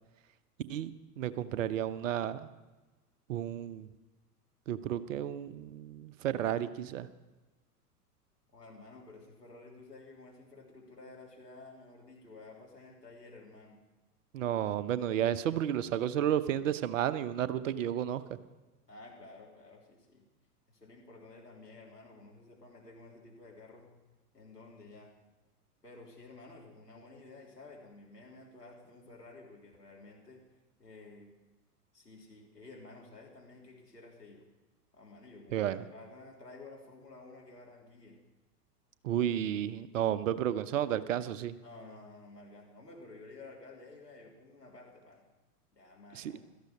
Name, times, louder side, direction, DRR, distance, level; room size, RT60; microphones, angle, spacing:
voice 1, 0.7-2.5 3.3-3.9 4.7-7.1 14.3-18.2 35.5-35.9 39.0-41.6 46.1-46.3, right 10 dB, 55° right, 14 dB, 0.9 m, -32 dB
voice 2, 8.5-13.8 18.9-20.2 20.7-23.9 24.3-25.1 25.8-31.4 31.9-34.5 34.9-38.2 41.6-45.2 45.7-46.5, left 3 dB, 85° left, -2 dB, 3.6 m, -52 dB
17.0 x 13.5 x 5.3 m, 1.2 s
figure-of-eight pair, 95°, 47 cm